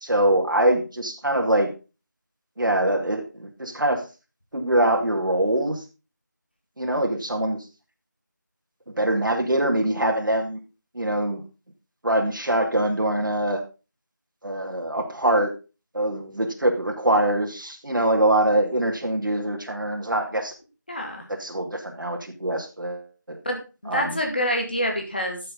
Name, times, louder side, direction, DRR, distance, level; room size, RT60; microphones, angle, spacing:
voice 1, 0.0-1.7 2.6-4.0 4.5-5.8 6.8-7.6 9.0-10.6 10.9-11.4 12.0-13.6 14.4-15.5 15.9-20.5 21.3-23.4 23.9-24.2, right 1 dB, 85° right, 2 dB, 2.3 m, -23 dB
voice 2, 20.9-21.2 23.4-23.6 23.8-25.4, equal, 30° left, 2 dB, 2.0 m, -26 dB
12.0 x 6.8 x 3.9 m, 0.31 s
figure-of-eight pair, 180°, 11 cm